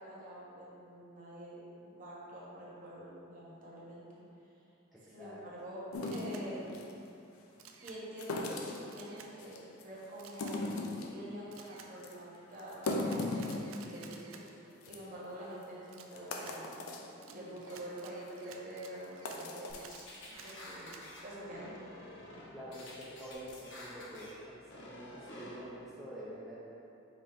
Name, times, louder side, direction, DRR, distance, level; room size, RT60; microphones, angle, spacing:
voice 1, 0.0-1.6 1.8-4.0 5.1-5.8 6.1-6.6 7.8-10.7 11.0-12.8 13.2-16.8 17.3-19.8 20.3-21.9, right 1 dB, 40° right, -6 dB, 0.9 m, -47 dB
voice 2, 4.9-5.7 22.5-26.6, equal, ahead, -9 dB, 0.4 m, -47 dB
sound 1, 5.9-6.9 8.2-8.9 9.4-9.8 10.2-11.2 11.6-11.7 12.0-12.1 12.6-14.2 14.5-14.6 14.8-15.0 15.6-15.7 16.1-17.1 17.6-17.8 18.3-18.4 19.0-19.8, left 2 dB, 90° left, 0.4 m, -37 dB
Camera, 6.1-6.5 7.6-8.0 8.9-9.3 10.2-10.6 11.5-11.9 12.8-14.4 15.9-16.6 17.2-21.0, right 7 dB, 70° right, 0.3 m, -54 dB
sound 2, 19.7-21.2 21.5-22.5 22.7-24.3 24.7-25.6, left 1 dB, 60° left, 0.8 m, -49 dB
5.2 x 2.8 x 3.5 m, 2.8 s
head